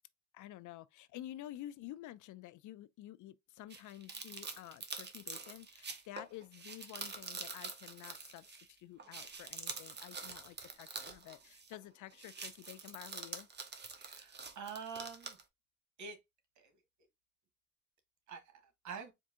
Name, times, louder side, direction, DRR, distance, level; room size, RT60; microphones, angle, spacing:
voice 1, 0.3-13.5, left 14 dB, 80° left, 0.5 m, -50 dB
sound 1, 3.7-8.7 9.0-11.8 12.1-15.4, right 4 dB, 35° right, 0.9 m, -46 dB
voice 2, 14.0-15.4 16.0-16.2 16.5-16.8 18.3-19.1, right 6 dB, 70° right, 1.4 m, -46 dB
4.4 x 2.6 x 3.6 m
cardioid pair, 90°, 30 cm